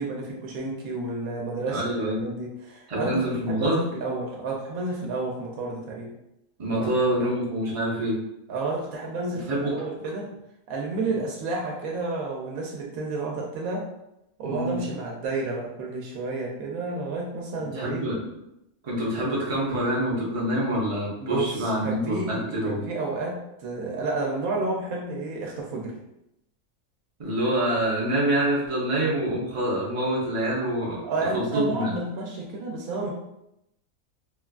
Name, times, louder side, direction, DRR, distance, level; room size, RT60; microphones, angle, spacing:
voice 1, 0.0-1.9 2.2-6.1 7.2-7.3 8.5-10.3 10.7-13.9 14.4-18.0 21.2-26.0 31.0-33.1, right 3 dB, 90° right, -2 dB, 1.0 m, -31 dB
voice 2, 1.7-2.3 2.9-3.8 6.6-8.2 9.5-9.7 11.1-11.2 14.4-14.8 17.6-18.2 18.8-22.8 27.2-31.0 31.3-31.9, right 1 dB, 35° right, -4 dB, 0.6 m, -26 dB
3.2 x 2.3 x 2.2 m, 0.85 s
omnidirectional pair, 1.5 m